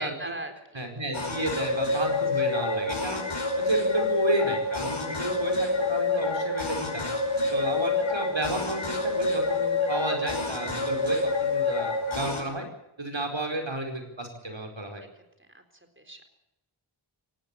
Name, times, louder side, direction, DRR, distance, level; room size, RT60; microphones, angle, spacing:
voice 1, 0.0-0.9 3.3-3.5 7.4-7.7 15.2-15.3 15.5-16.3, right 1 dB, 25° right, 6 dB, 4.1 m, -41 dB
voice 2, 0.7-3.2 3.6-7.1 7.5-12.7 13.0-15.0, right 2 dB, 65° right, 3 dB, 4.8 m, -32 dB
sound 1, 1.1-12.4, left 3 dB, 70° left, 4.9 m, -27 dB
19.0 x 16.5 x 8.4 m, 0.87 s
wide cardioid pair, 50°, 50 cm